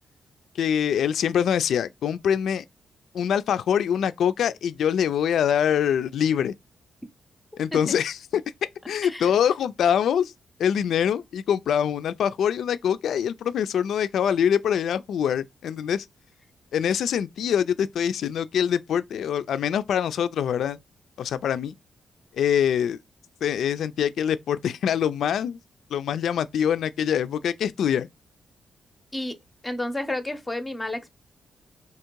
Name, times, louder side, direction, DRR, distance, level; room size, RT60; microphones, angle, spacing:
voice 1, 0.6-2.6 3.1-6.5 7.6-8.4 8.9-10.3 10.6-16.1 16.7-20.8 21.2-21.7 22.3-23.0 23.4-25.6 25.9-28.1, left 8 dB, 80° left, 0.3 m, -24 dB
voice 2, 29.6-31.1, left 1 dB, 10° left, 0.6 m, -31 dB
3.6 x 2.8 x 4.5 m
wide cardioid pair, 130°, 0 cm